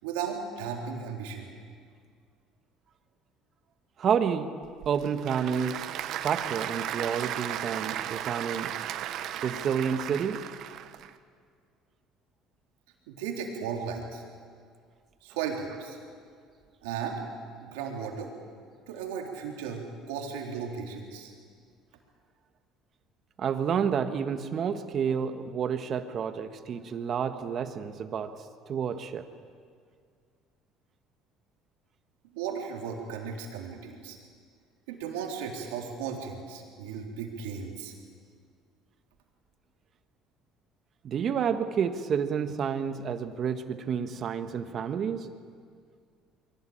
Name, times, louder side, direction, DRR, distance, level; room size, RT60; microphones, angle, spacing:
voice 1, 0.0-1.5 13.1-14.2 15.2-16.0 16.8-17.2 17.6-18.3 18.9-21.3 32.3-34.2 34.9-37.9, right 6 dB, 90° right, 0 dB, 3.8 m, -35 dB
voice 2, 4.0-4.5 4.8-5.8 6.2-8.7 9.4-10.4 23.4-28.3 28.7-29.3 41.0-45.3, right 7 dB, 50° right, 9 dB, 1.6 m, -29 dB
Applause / Crowd, 4.6-11.1, right 11 dB, 65° right, 1.1 m, -35 dB
23.5 x 17.5 x 8.9 m, 2.1 s
supercardioid pair, 85°, 0 cm